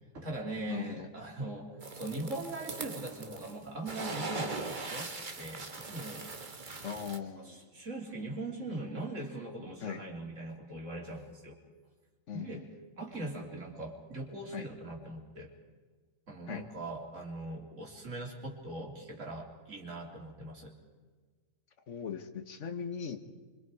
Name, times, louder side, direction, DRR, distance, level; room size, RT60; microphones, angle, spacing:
voice 1, 0.1-7.0 7.4-11.6 12.3-12.7 13.0-15.5 16.3-20.8, right 2 dB, 70° right, 0 dB, 3.7 m, -41 dB
voice 2, 0.7-1.1 6.8-7.7 9.8-10.0 12.3-12.6 14.5-14.7 16.5-16.6 21.9-23.2, left 7 dB, 65° left, 7 dB, 1.7 m, -39 dB
sound 1, 1.8-3.6 3.9-7.2, right 3 dB, 40° right, 1.5 m, -40 dB
26.0 x 25.0 x 4.8 m, 1.5 s
omnidirectional pair, 1.4 m